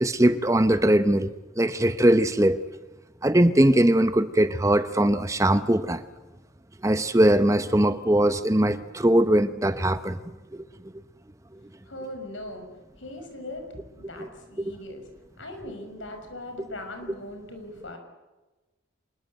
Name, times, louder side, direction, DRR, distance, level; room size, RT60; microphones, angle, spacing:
voice 1, 0.0-1.3 1.6-2.6 3.2-6.0 6.8-10.2, right 1 dB, 15° right, 12 dB, 0.8 m, -20 dB
voice 2, 11.8-12.7 13.0-15.1 15.4-18.0, left 1 dB, 75° left, 6 dB, 5.8 m, -40 dB
26.0 x 21.5 x 7.8 m, 1.1 s
head